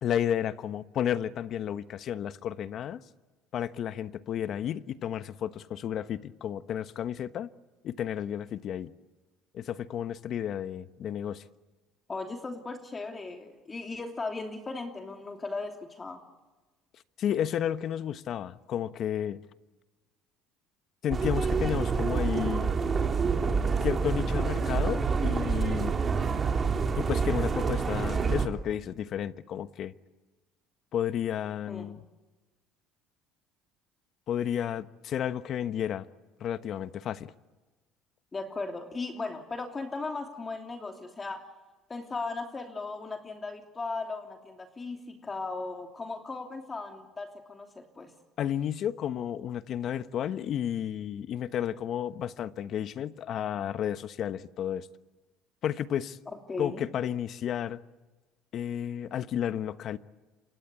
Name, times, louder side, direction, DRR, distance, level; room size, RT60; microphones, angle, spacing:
voice 1, 0.0-3.0 3.5-7.5 7.8-8.9 9.5-11.4 17.2-19.4 21.0-22.8 23.8-26.0 27.0-29.9 30.9-32.0 34.3-36.1 36.4-37.3 48.4-54.9 55.6-56.2 56.6-57.8 58.5-60.0, left 10 dB, 55° left, 1.1 m, -32 dB
voice 2, 12.1-16.2 31.7-31.9 38.3-41.5 41.9-48.1 56.5-56.9, left 3 dB, 25° left, 3.0 m, -37 dB
sound 1, 21.1-28.5, right 5 dB, 30° right, 3.5 m, -27 dB
28.0 x 25.0 x 8.4 m
supercardioid pair, 90°, 0 cm